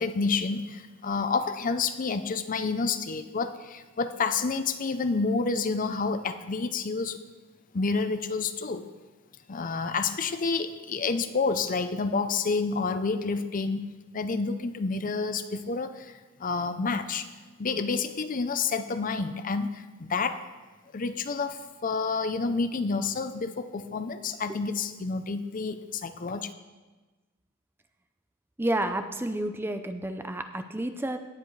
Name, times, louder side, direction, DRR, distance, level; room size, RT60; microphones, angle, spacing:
voice 1, 0.0-7.2 7.7-8.9 9.5-13.9 14.1-17.3 17.6-20.4 20.9-26.5, left 4 dB, 40° left, 10 dB, 0.6 m, -29 dB
voice 2, 28.6-31.2, right 1 dB, 10° right, 7 dB, 0.5 m, -30 dB
17.0 x 10.0 x 3.2 m, 1.3 s
head